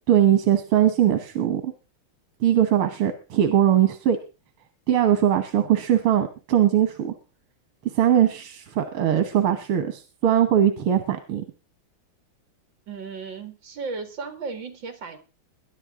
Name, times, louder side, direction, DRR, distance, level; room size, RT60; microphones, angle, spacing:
voice 1, 0.1-1.7 2.4-4.2 4.9-7.1 7.9-11.4, right 10 dB, 90° right, 8 dB, 2.0 m, -20 dB
voice 2, 12.9-15.2, right 4 dB, 60° right, 8 dB, 2.6 m, -35 dB
22.0 x 10.5 x 3.7 m, 0.33 s
omnidirectional pair, 2.3 m